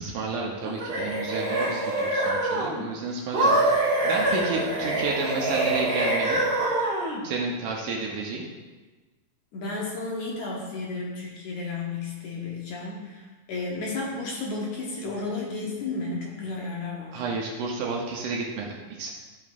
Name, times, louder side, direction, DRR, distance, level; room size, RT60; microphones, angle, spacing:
voice 1, 0.0-6.4 7.2-8.5 17.1-19.1, right 3 dB, 75° right, -1 dB, 2.2 m, -31 dB
sound 1, 0.6-2.8 3.3-7.2, right 2 dB, 45° right, 2.0 m, -25 dB
voice 2, 9.5-13.2 13.5-17.2, left 3 dB, 65° left, -3 dB, 2.2 m, -33 dB
12.5 x 6.0 x 2.5 m, 1.3 s
omnidirectional pair, 4.1 m